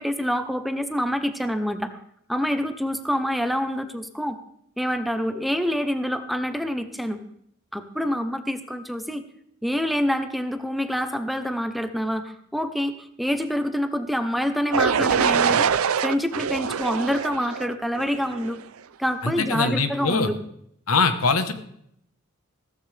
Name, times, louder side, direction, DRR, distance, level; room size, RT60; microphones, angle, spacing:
voice 1, 0.0-1.9 2.3-4.4 4.8-7.2 7.7-9.2 9.6-18.6 19.0-20.4, equal, ahead, 8 dB, 0.8 m, -26 dB
sound 1, 14.7-18.6, right 7 dB, 80° right, 0.5 m, -24 dB
voice 2, 19.2-20.3 20.9-21.5, left 4 dB, 80° left, 9 dB, 1.3 m, -22 dB
15.5 x 14.0 x 3.4 m, 0.69 s
head